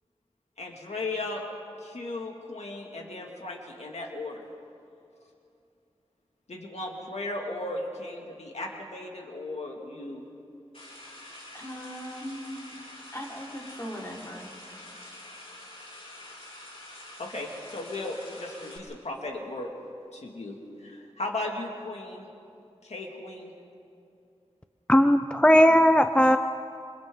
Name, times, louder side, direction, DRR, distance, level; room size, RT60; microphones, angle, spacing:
voice 1, 0.6-1.4 1.8-4.4 6.5-10.3 17.2-19.7 20.1-22.3 22.8-23.5, left 2 dB, 90° left, 0 dB, 2.4 m, -36 dB
sound 1, 10.7-18.8, left 1 dB, 60° left, 4.3 m, -46 dB
voice 2, 11.5-12.8 13.1-14.5, equal, 25° left, -3 dB, 4.7 m, -39 dB
voice 3, 24.9-26.4, equal, 10° left, 9 dB, 0.5 m, -18 dB
27.5 x 26.5 x 4.0 m, 2.7 s
wide cardioid pair, 70°, 11 cm